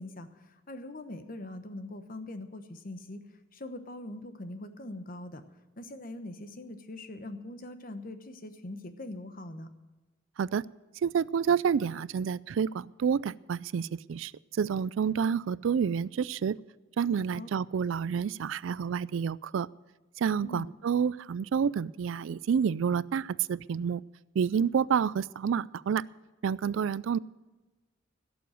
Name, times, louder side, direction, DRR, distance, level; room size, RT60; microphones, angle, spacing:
voice 1, 0.0-3.2 3.5-5.4 5.8-9.7 17.3-17.5 20.4-20.7, left 1 dB, 45° left, 9 dB, 1.0 m, -42 dB
voice 2, 11.0-16.6 17.0-19.7 20.2-24.0 24.4-26.0 26.4-27.2, right 7 dB, 70° right, 20 dB, 0.3 m, -29 dB
16.5 x 7.0 x 7.7 m, 1.2 s
head